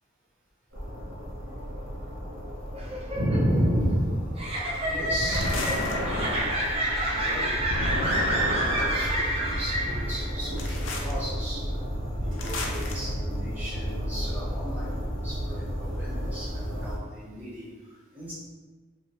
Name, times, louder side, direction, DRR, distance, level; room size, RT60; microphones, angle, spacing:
sound 1, 0.7-17.0, equal, 70° right, 1.2 m, -34 dB
sound 2, 2.7-10.3, right 1 dB, 30° right, 0.6 m, -29 dB
voice 1, 3.1-4.2 4.9-6.4 7.0-11.6 12.2-15.0 15.2-17.7 18.1-18.3, equal, 10° right, -11 dB, 1.4 m, -32 dB
sound 3, 5.3-6.8 7.7-9.2 10.6-11.1 12.4-12.9, left 1 dB, 75° left, 0.5 m, -31 dB
4.9 x 2.2 x 3.1 m, 1.4 s
head